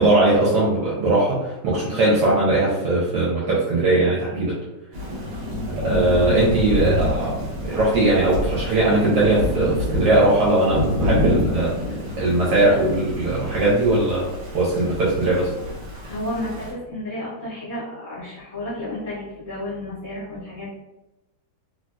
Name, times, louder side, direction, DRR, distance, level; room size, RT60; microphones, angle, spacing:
voice 1, 0.0-4.5 5.8-11.7 12.2-15.5, right 2 dB, 75° right, -6 dB, 1.3 m, -20 dB
Thunder / Rain, 4.9-16.7, left 1 dB, 55° right, 1.2 m, -27 dB
voice 2, 16.0-20.8, left 1 dB, 35° left, -12 dB, 1.7 m, -32 dB
3.1 x 2.6 x 2.2 m, 0.99 s
omnidirectional pair, 1.9 m